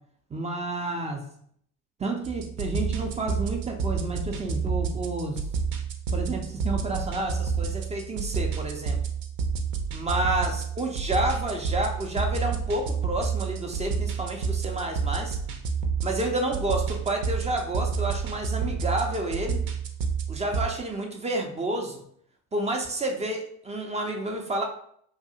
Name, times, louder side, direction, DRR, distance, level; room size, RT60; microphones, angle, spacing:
voice 1, 0.3-1.2 2.0-5.4 6.1-9.0 9.9-15.4 16.0-19.6 20.3-22.0 22.5-24.6, right 2 dB, 15° right, 3 dB, 0.3 m, -30 dB
sound 1, 2.2-20.7, right 5 dB, 70° right, 0.6 m, -29 dB
2.6 x 2.3 x 2.7 m, 0.64 s
hypercardioid pair, 70°, 49 cm